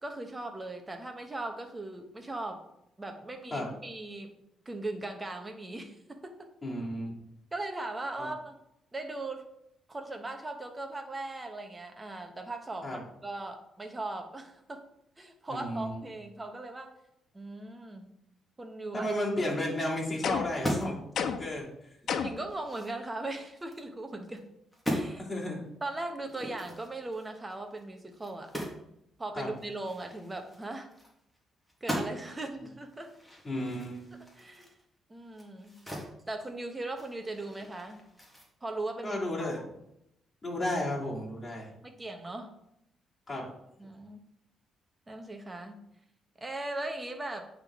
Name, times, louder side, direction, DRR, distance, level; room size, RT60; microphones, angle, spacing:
voice 1, 0.0-2.6 3.0-4.3 4.6-6.5 7.5-8.5 8.9-9.5 9.9-14.8 15.2-16.9 17.3-18.1 18.6-19.1 22.2-24.5 24.9-25.2 25.8-28.5 29.2-30.9 31.8-33.1 34.4-34.7 35.1-35.8 36.3-38.0 38.6-39.6 41.8-42.5 43.8-44.2 45.1-45.8 46.4-47.5, right 2 dB, 20° right, 4 dB, 1.1 m, -39 dB
voice 2, 6.6-7.2 8.2-8.3 12.8-13.0 15.5-16.0 18.9-21.7 25.0-25.7 29.3-29.5 33.4-34.1 39.0-39.6 40.4-41.7 43.3-43.5, left 1 dB, 25° left, -5 dB, 2.7 m, -33 dB
sound 1, 20.2-20.7 21.2-21.6 22.1-22.5, left 7 dB, 65° left, 0.5 m, -32 dB
sound 2, 20.4-21.1 21.5-21.6 22.1-23.8 24.3-24.5 24.7-25.1 26.3-28.9 29.1-29.2 29.6-31.4 31.7-32.4 32.9-36.1 36.5-38.5, equal, 5° left, 1.7 m, -39 dB
8.8 x 3.7 x 3.7 m, 0.80 s
cardioid pair, 90°, 0 cm